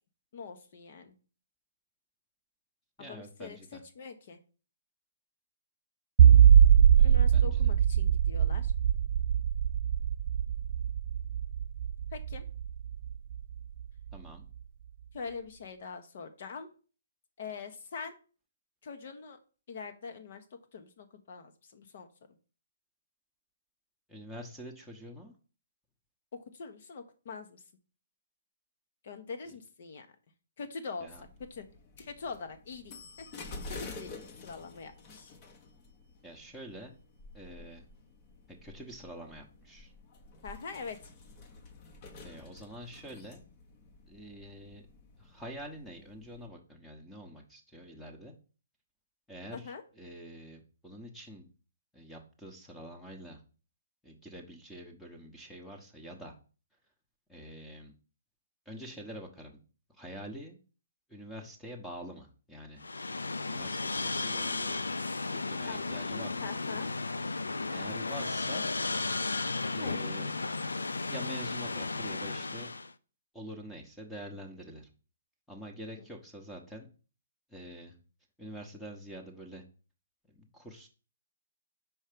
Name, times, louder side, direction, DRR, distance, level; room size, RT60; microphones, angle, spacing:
voice 1, 0.3-1.1 3.0-4.4 7.0-8.7 12.1-12.4 15.1-16.7 17.4-18.2 18.8-19.4 19.7-20.4 20.7-22.1 26.3-27.6 29.0-30.1 30.6-31.7 32.0-34.1 34.4-35.3 40.4-41.1 49.5-49.8 65.6-66.9 69.8-70.4 76.0-76.1, left 5 dB, 50° left, 7 dB, 1.2 m, -43 dB
voice 2, 3.0-3.8 7.0-7.7 14.1-14.5 24.1-25.3 31.0-31.2 36.2-36.9 37.3-37.8 38.6-39.9 42.2-43.4 44.1-44.8 45.2-48.3 49.3-51.5 51.9-53.4 54.0-56.3 57.3-57.9 58.7-59.6 59.9-60.6 61.1-62.8 63.4-64.8 65.4-66.5 67.7-68.6 69.7-70.3 71.1-72.7 73.3-74.9 75.5-76.9 77.5-77.9 78.4-79.6 80.3-80.9, equal, 5° left, 1 dB, 1.1 m, -46 dB
sound 1, 6.2-13.4, right 9 dB, 45° right, 0.3 m, -22 dB
sound 2, 31.1-46.5, left 3 dB, 35° left, 1.1 m, -50 dB
sound 3, 62.8-72.9, left 3 dB, 80° left, 0.4 m, -34 dB
5.5 x 4.6 x 5.1 m, 0.37 s
figure-of-eight pair, 130°, 0 cm